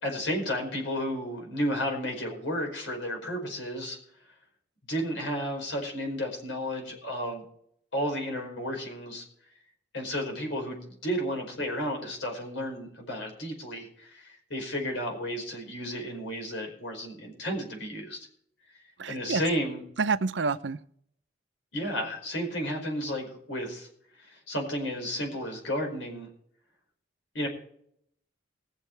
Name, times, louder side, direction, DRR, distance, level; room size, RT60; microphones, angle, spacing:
voice 1, 0.0-4.0 4.9-7.4 7.9-9.2 9.9-18.3 19.1-19.8 21.7-23.9 24.2-26.3 27.3-27.5, equal, 85° left, 2 dB, 5.0 m, -32 dB
voice 2, 19.0-19.4 20.0-20.8, right 4 dB, 75° right, 13 dB, 0.7 m, -28 dB
20.0 x 7.5 x 4.6 m, 0.67 s
head